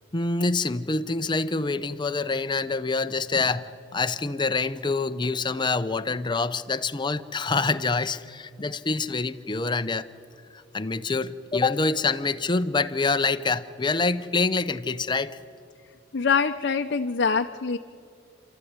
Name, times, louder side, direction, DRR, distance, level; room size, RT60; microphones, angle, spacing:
voice 1, 0.1-10.1 10.5-15.4, left 3 dB, 25° left, 11 dB, 0.6 m, -26 dB
voice 2, 16.1-17.8, left 5 dB, 60° left, 4 dB, 0.7 m, -24 dB
28.5 x 13.5 x 9.5 m, 2.4 s
head